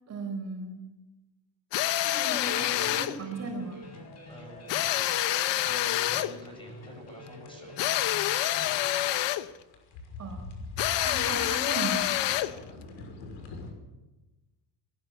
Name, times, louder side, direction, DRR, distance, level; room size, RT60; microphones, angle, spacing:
voice 1, 0.1-0.8 1.8-3.9 10.2-10.5 10.9-12.2, right 3 dB, 35° right, 2 dB, 4.5 m, -37 dB
sound 1, 1.7-3.2 4.7-6.4 7.8-9.5 10.8-12.6, left 14 dB, 70° left, 1.1 m, -27 dB
voice 2, 2.0-2.8 3.2-3.3 4.3-4.7 5.7-7.7 12.4-12.8, equal, 10° left, 2 dB, 7.5 m, -49 dB
sound 2, 2.4-9.2, left 1 dB, 35° left, 5.6 m, -47 dB
sound 3, 3.4-13.7, left 3 dB, 85° left, 5.8 m, -45 dB
21.0 x 18.0 x 8.6 m, 1.1 s
cardioid pair, 160°, 45 cm